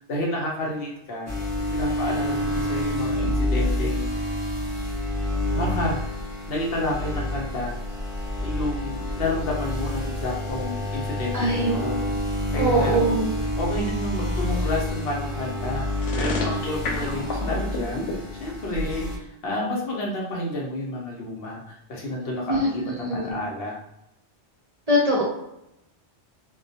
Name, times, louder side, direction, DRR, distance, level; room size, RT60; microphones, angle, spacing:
voice 1, 0.1-1.3 1.7-4.0 5.4-6.0 6.5-7.8 8.4-12.1 12.5-13.0 13.6-23.8, left 1 dB, 65° left, -3 dB, 0.7 m, -30 dB
sound 1, 1.3-19.2, left 1 dB, 25° left, 0.3 m, -28 dB
voice 2, 11.3-11.7 12.6-13.3 22.5-23.3 24.9-25.2, right 1 dB, 45° right, -5 dB, 0.6 m, -22 dB
sound 2, 16.0-18.1, left 3 dB, 90° left, 0.9 m, -30 dB
2.2 x 2.1 x 2.6 m, 0.83 s
omnidirectional pair, 1.2 m